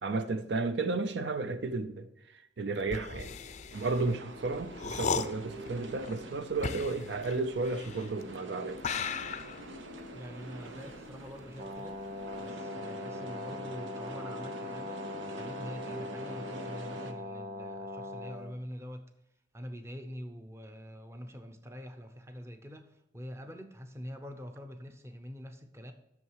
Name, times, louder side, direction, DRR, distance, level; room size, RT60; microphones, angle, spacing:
voice 1, 0.0-3.4 3.7-8.8, right 3 dB, 65° right, 0.6 m, -33 dB
sound 1, 2.8-8.3 8.8-11.7 12.0-12.4, left 5 dB, 40° left, 0.5 m, -37 dB
sound 2, 3.7-17.1, right 1 dB, 85° right, 1.0 m, -46 dB
voice 2, 10.1-12.0 12.4-19.0 19.5-25.9, equal, 15° right, 0.7 m, -45 dB
Brass instrument, 11.5-18.5, left 2 dB, 40° right, 0.8 m, -41 dB
8.6 x 6.5 x 4.7 m
head